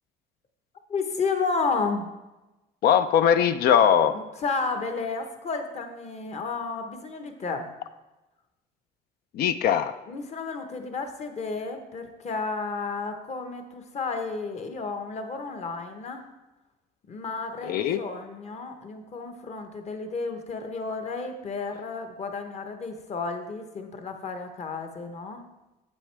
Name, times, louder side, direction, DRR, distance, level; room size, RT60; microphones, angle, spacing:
voice 1, 0.9-2.1 4.1-7.7 10.1-16.3 17.1-25.5, left 4 dB, 40° left, 6 dB, 1.0 m, -32 dB
voice 2, 2.8-4.1 9.3-9.9 17.7-18.0, left 9 dB, 65° left, 11 dB, 0.5 m, -20 dB
8.4 x 7.4 x 3.4 m, 1.1 s
cardioid pair, 110°, 17 cm